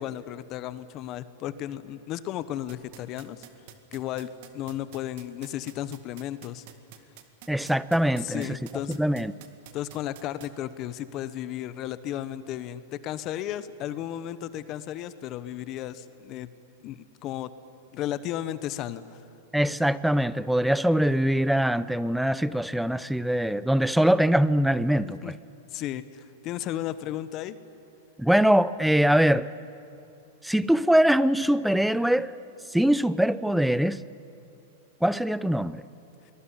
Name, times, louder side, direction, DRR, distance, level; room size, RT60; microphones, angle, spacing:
voice 1, 0.0-3.5 3.9-6.6 8.2-9.0 9.7-16.5 16.8-17.5 17.9-19.2 25.2-25.3 25.7-27.6, left 12 dB, 35° left, 1.0 m, -34 dB
sound 1, 2.7-10.5, right 12 dB, 60° right, 2.0 m, -47 dB
voice 2, 7.5-8.5 8.9-9.3 19.5-25.3 28.2-29.5 30.4-32.3 32.7-34.0 35.0-35.8, equal, ahead, 0.5 m, -23 dB
23.0 x 19.5 x 10.0 m
supercardioid pair, 140°, 0 cm